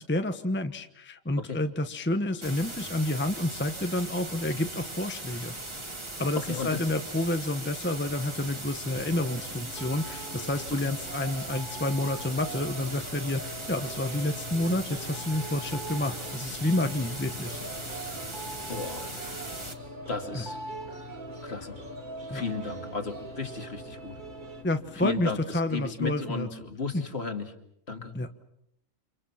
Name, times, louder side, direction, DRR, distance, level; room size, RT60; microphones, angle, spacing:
voice 1, 0.1-5.5 6.2-17.6 20.3-20.4 22.3-22.4 24.6-26.5 26.9-27.0 28.1-28.3, left 1 dB, 10° left, 7 dB, 1.0 m, -29 dB
sound 1, 2.4-19.8, right 2 dB, 20° right, 2.0 m, -39 dB
voice 2, 6.4-6.8 10.7-10.9 18.7-19.4 20.1-20.6 21.4-21.8 22.3-24.2 25.0-27.5 27.9-28.1, left 4 dB, 50° left, 5 dB, 2.6 m, -34 dB
sound 2, 8.9-25.5, left 9 dB, 80° left, 1.6 m, -46 dB
sound 3, 9.3-24.6, right 4 dB, 35° right, 1.9 m, -43 dB
29.5 x 27.0 x 5.9 m, 0.75 s
omnidirectional pair, 1.4 m